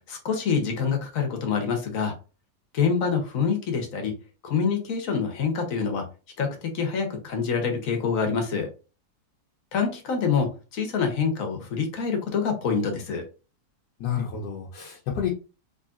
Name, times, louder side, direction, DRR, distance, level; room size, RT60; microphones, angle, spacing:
voice 1, 0.0-2.1 2.7-4.1 4.4-6.0 6.4-8.7 9.7-13.2, left 6 dB, 55° left, 4 dB, 1.2 m, -26 dB
voice 2, 14.0-15.3, left 8 dB, 75° left, -1 dB, 1.3 m, -29 dB
3.9 x 3.1 x 2.4 m, 0.33 s
omnidirectional pair, 1.9 m